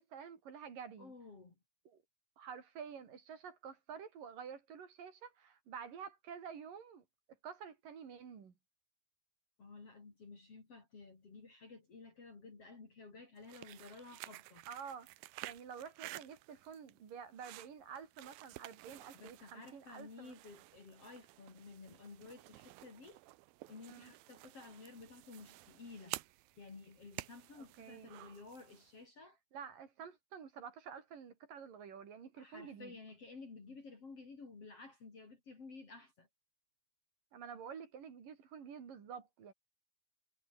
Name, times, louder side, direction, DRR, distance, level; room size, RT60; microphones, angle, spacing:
voice 1, 0.0-1.1 1.9-2.0 2.4-8.5 14.7-15.1 15.4-20.3 23.9-24.1 27.5-28.1 29.5-33.0 37.3-39.5, right 7 dB, 65° right, 4.8 m, -50 dB
voice 2, 1.0-1.5 9.6-14.6 19.1-23.2 23.7-26.2 26.6-29.4 32.4-36.3, left 4 dB, 40° left, 5.2 m, -53 dB
sound 1, 13.4-29.0, right 19 dB, 85° right, 2.6 m, -52 dB
omnidirectional pair, 4.2 m